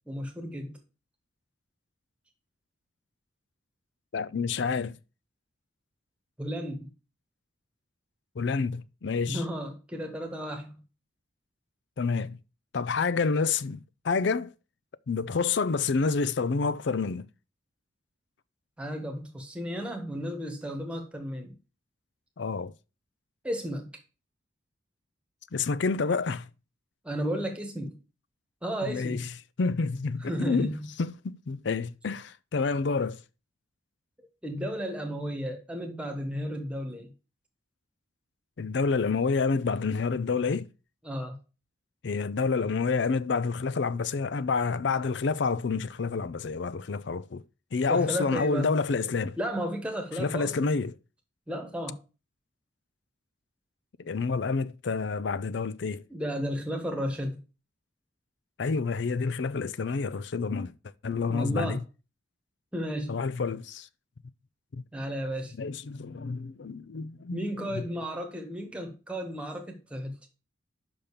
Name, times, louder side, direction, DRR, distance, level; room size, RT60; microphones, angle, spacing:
voice 1, 0.1-0.8 6.4-6.9 9.2-10.8 18.8-21.6 23.4-23.9 27.0-28.0 28.6-29.3 30.2-30.9 34.4-37.1 41.0-41.4 47.9-48.8 49.4-50.7 51.5-52.0 56.1-57.4 61.3-61.8 62.7-63.2 64.9-65.6 67.3-70.3, equal, 5° right, 1.4 m, -33 dB
voice 2, 4.1-5.0 8.4-9.4 12.0-12.4 12.7-14.5 15.1-17.3 22.4-22.7 25.5-26.5 28.8-29.3 29.6-30.7 31.0-33.2 38.6-40.7 42.0-47.4 47.7-49.4 50.2-50.9 54.0-56.0 58.6-60.7 61.0-61.8 63.1-63.9 64.7-64.8 65.6-67.4 67.7-67.8, left 4 dB, 60° left, 0.5 m, -28 dB
5.8 x 5.3 x 6.7 m
head